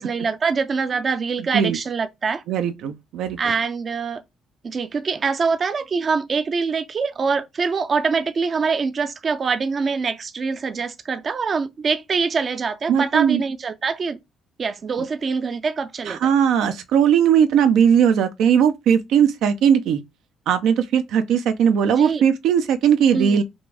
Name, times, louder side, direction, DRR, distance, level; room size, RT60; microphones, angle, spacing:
voice 1, 0.0-2.4 3.4-4.2 4.6-14.2 14.6-16.2 22.0-22.2 23.1-23.4, right 5 dB, 40° right, 0.5 m, -24 dB
voice 2, 2.5-3.4 12.9-13.4 16.1-20.0 20.5-23.4, right 8 dB, 85° right, 0.6 m, -18 dB
5.2 x 2.6 x 3.3 m
cardioid pair, 110°, 0 cm